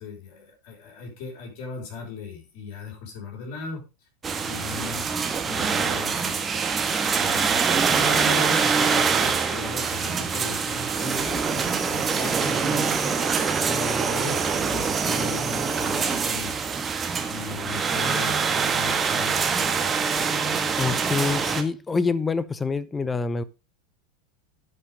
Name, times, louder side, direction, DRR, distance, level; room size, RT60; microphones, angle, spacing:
voice 1, 0.0-3.8 4.4-5.1 5.4-6.2 7.1-13.0 13.6-16.5 17.3-19.4, left 4 dB, 50° left, 5.6 m, -37 dB
sound 1, 4.2-21.6, right 5 dB, 20° right, 1.4 m, -24 dB
voice 2, 20.8-23.4, left 4 dB, 15° left, 0.7 m, -26 dB
11.0 x 5.8 x 5.0 m
figure-of-eight pair, 85°, 0 cm